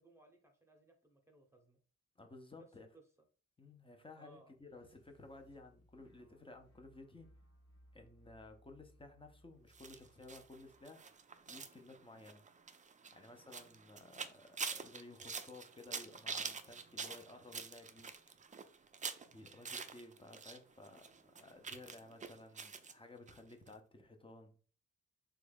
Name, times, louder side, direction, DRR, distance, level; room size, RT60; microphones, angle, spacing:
voice 1, 0.0-1.8 2.6-2.7 2.9-3.0 4.2-4.5, right 3 dB, 10° right, 4 dB, 0.9 m, -63 dB
voice 2, 2.2-2.9 3.6-7.3 7.9-11.1 11.5-12.4 13.1-18.1 19.2-24.6, left 2 dB, 20° left, 4 dB, 0.7 m, -56 dB
sound 1, 4.6-10.8, equal, 55° left, 1.1 m, -67 dB
sound 2, 9.7-20.6 20.8-22.9 23.3-23.4 23.7-23.8, right 5 dB, 25° right, 0.4 m, -46 dB
3.2 x 2.3 x 3.4 m, 0.40 s
cardioid pair, 75°, 30 cm